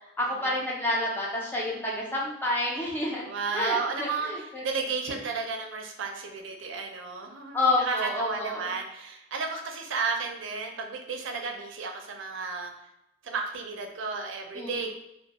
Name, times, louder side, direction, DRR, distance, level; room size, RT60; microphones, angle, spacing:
voice 1, 0.2-3.3 3.5-4.6 7.5-8.7 14.5-14.9, left 2 dB, 10° left, -4 dB, 0.5 m, -29 dB
voice 2, 3.3-12.7 13.2-14.9, right 4 dB, 85° right, 3 dB, 0.4 m, -33 dB
2.2 x 2.2 x 2.8 m, 0.82 s
head